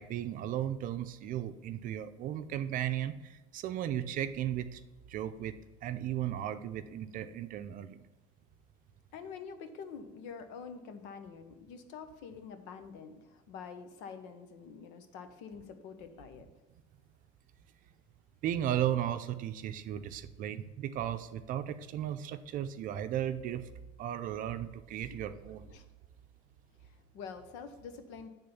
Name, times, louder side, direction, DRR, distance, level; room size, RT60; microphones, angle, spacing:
voice 1, 0.0-4.8 5.1-8.0 18.4-23.7 24.0-25.7, right 11 dB, 50° right, 10 dB, 0.6 m, -35 dB
voice 2, 9.1-16.5 25.1-25.2 25.7-25.9 26.8-28.3, left 6 dB, 85° left, 8 dB, 1.0 m, -46 dB
9.7 x 3.7 x 7.0 m, 1.1 s
cardioid pair, 150°, 18 cm